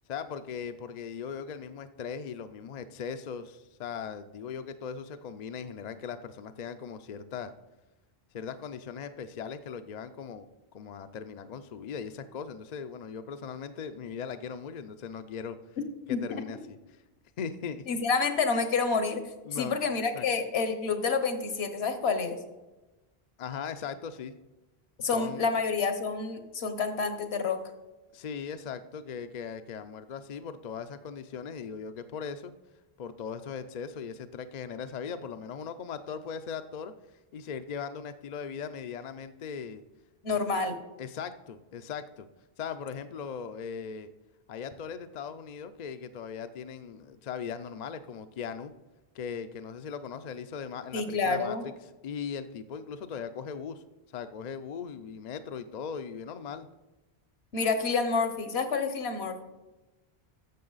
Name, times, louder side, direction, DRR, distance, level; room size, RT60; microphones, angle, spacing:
voice 1, 0.1-7.5 8.3-10.5 10.7-15.6 16.1-16.8 17.4-17.8 19.4-19.8 20.1-20.3 23.4-24.4 25.1-25.4 28.1-32.5 33.0-36.9 37.3-39.8 40.3-40.4 41.0-42.3 42.6-44.1 44.5-48.7 49.1-51.7 52.0-53.8 54.1-56.7, left 6 dB, 55° left, 9 dB, 0.5 m, -39 dB
voice 2, 16.1-16.4 17.9-19.2 19.5-22.4 25.0-27.6 40.2-40.8 50.9-51.7 57.5-59.4, left 4 dB, 75° left, 8 dB, 1.2 m, -28 dB
12.0 x 7.0 x 4.0 m, 1.1 s
omnidirectional pair, 1.1 m